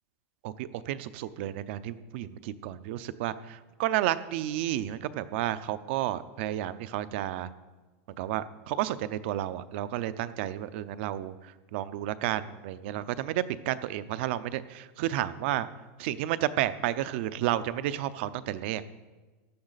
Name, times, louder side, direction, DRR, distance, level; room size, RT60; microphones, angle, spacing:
voice 1, 0.4-7.5 8.2-11.3 11.7-15.7 16.0-18.8, right 13 dB, 55° right, 15 dB, 0.6 m, -31 dB
15.5 x 11.0 x 4.1 m, 1.3 s
supercardioid pair, 175°, 8 cm